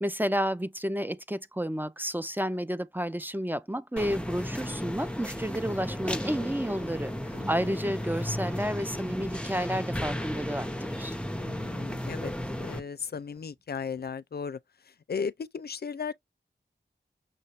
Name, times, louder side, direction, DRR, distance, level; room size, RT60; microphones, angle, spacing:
voice 1, 0.0-11.1, equal, 10° right, 0.5 m, -31 dB
sound 1, 4.0-12.8, equal, 5° left, 0.9 m, -34 dB
sound 2, 5.8-14.1, right 3 dB, 70° right, 3.2 m, -56 dB
voice 2, 7.3-7.8 11.4-12.3 12.6-16.1, left 6 dB, 55° left, 0.5 m, -36 dB
6.4 x 2.6 x 3.0 m
wide cardioid pair, 95°, 19 cm